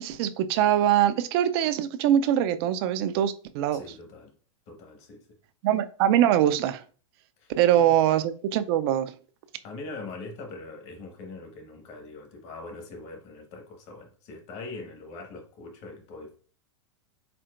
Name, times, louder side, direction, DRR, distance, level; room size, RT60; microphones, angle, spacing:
voice 1, 0.0-3.8 5.6-6.8 7.6-9.1, right 11 dB, 50° right, 0.5 m, -23 dB
voice 2, 3.7-4.4 4.7-5.4 7.4-7.9 9.6-16.4, left 3 dB, 45° left, 1.4 m, -42 dB
4.5 x 4.1 x 2.5 m
hypercardioid pair, 120°, 16 cm